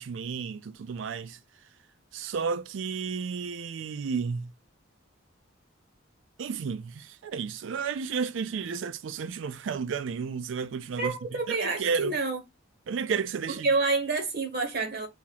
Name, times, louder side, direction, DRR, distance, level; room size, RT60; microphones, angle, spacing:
voice 1, 0.0-1.4 2.1-4.5 6.4-12.2 12.9-13.7, right 6 dB, 75° right, 0.4 m, -32 dB
voice 2, 11.0-12.4 13.6-15.1, right 3 dB, 55° right, 0.8 m, -28 dB
3.0 x 2.8 x 3.8 m
head